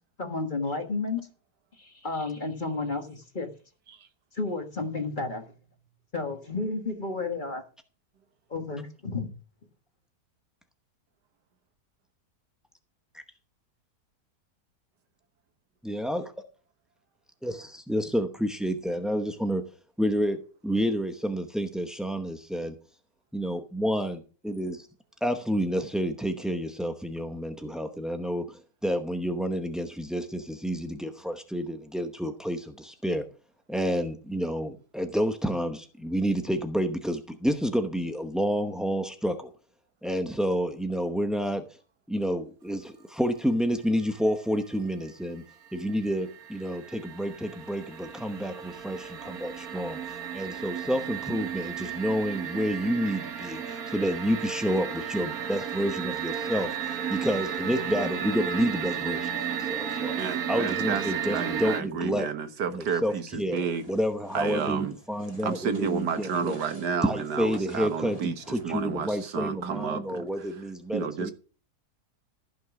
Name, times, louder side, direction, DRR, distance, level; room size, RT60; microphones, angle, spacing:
voice 1, 0.2-1.3 1.7-3.5 4.3-5.5 6.1-7.6 8.5-9.3, left 3 dB, 30° left, 1.5 m, -32 dB
voice 2, 15.8-16.3 17.4-19.6 20.0-22.7 23.3-24.9 25.2-33.2 33.7-39.5 40.0-41.6 42.1-45.4 45.7-56.7 57.1-62.3 62.7-66.6 67.0-71.3, equal, ahead, 0.3 m, -29 dB
sound 1, 45.1-45.2 45.5-61.8, right 8 dB, 60° right, 1.7 m, -34 dB
voice 3, 60.2-63.8 64.3-64.9 65.4-70.5 70.9-71.3, right 6 dB, 75° right, 1.8 m, -31 dB
sound 2, 63.5-68.9, right 1 dB, 20° right, 3.0 m, -50 dB
15.0 x 6.1 x 5.9 m
omnidirectional pair, 1.8 m